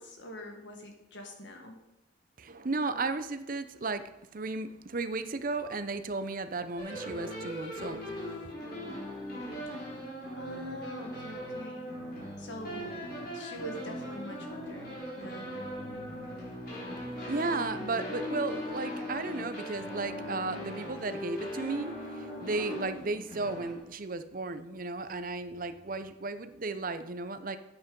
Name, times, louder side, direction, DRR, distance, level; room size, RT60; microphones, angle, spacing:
voice 1, 0.0-1.8 9.8-10.1 10.4-11.9 12.4-15.5, equal, 75° left, 3 dB, 1.8 m, -44 dB
voice 2, 2.4-4.0 4.3-8.0 17.3-27.6, right 3 dB, 45° right, 10 dB, 0.7 m, -34 dB
sound 1, 6.8-23.8, equal, 55° left, 4.0 m, -39 dB
9.8 x 8.1 x 5.4 m, 0.86 s
head